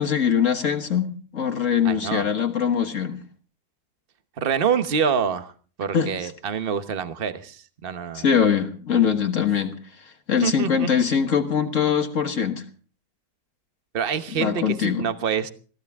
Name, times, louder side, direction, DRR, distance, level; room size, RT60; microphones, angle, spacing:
voice 1, 0.0-3.2 5.9-6.1 8.1-9.7 10.3-12.6 14.4-15.0, left 7 dB, 55° left, 7 dB, 1.7 m, -22 dB
voice 2, 1.8-2.3 4.4-5.5 5.8-8.3 10.4-10.9 13.9-15.5, right 7 dB, 40° right, 11 dB, 1.2 m, -26 dB
21.5 x 15.5 x 3.5 m, 0.40 s
omnidirectional pair, 1.6 m